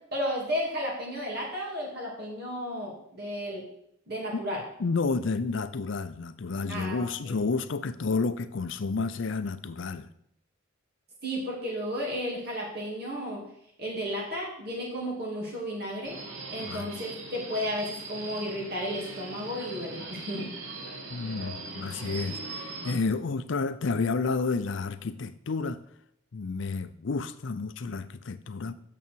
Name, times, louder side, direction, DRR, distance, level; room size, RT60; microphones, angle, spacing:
voice 1, 0.1-3.6 4.1-4.6 6.7-7.4 11.2-13.4 13.8-16.2 16.5-20.5, equal, 45° right, 2.5 m, -33 dB
voice 2, 4.8-10.1 16.6-16.9 21.1-25.8 26.3-28.7, left 4 dB, 60° left, 0.5 m, -30 dB
Subway metro underground, 16.0-22.9, right 3 dB, 80° right, 1.7 m, -40 dB
8.4 x 7.1 x 4.6 m
head